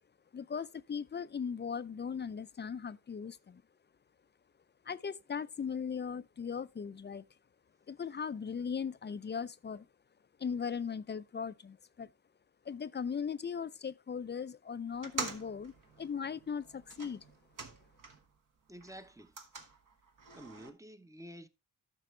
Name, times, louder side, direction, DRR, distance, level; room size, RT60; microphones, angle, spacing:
voice 1, 0.3-3.6 4.8-7.2 7.9-9.9 10.4-12.1 12.6-17.2, left 6 dB, 30° left, 0.4 m, -38 dB
sound 1, 14.9-18.4 18.7-20.7, right 4 dB, 55° right, 1.6 m, -45 dB
voice 2, 18.7-19.4 20.3-21.5, right 1 dB, 10° right, 0.8 m, -50 dB
13.5 x 6.2 x 3.2 m
wide cardioid pair, 110°, 37 cm